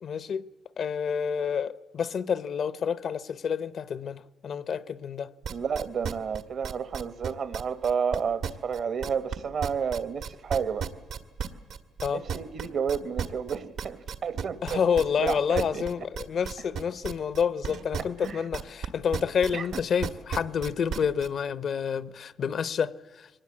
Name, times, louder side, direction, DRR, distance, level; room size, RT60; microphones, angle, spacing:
voice 1, 0.0-0.4 0.8-5.3 12.0-12.2 14.6-23.3, left 7 dB, 65° left, 0.7 m, -29 dB
sound 1, 5.4-9.4 9.6-18.9 19.1-21.3, right 7 dB, 85° right, 1.6 m, -33 dB
voice 2, 5.5-10.8 12.1-14.8 15.2-15.8 18.2-18.4 19.5-19.7, right 6 dB, 65° right, 1.1 m, -31 dB
23.0 x 19.5 x 8.5 m
cardioid pair, 80°, 0 cm